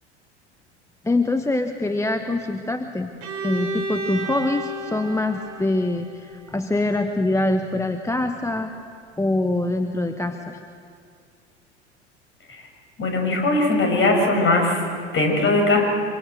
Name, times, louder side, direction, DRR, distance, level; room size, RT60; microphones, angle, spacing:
voice 1, 1.0-3.1 3.4-8.7 9.2-10.6, left 2 dB, 10° left, 6 dB, 1.2 m, -24 dB
Bowed string instrument, 3.2-7.0, right 2 dB, 55° right, 3.1 m, -32 dB
voice 2, 13.0-14.8 15.1-15.8, left 2 dB, 35° left, 2 dB, 6.5 m, -20 dB
25.0 x 24.0 x 7.9 m, 2.2 s
figure-of-eight pair, 75°, 35 cm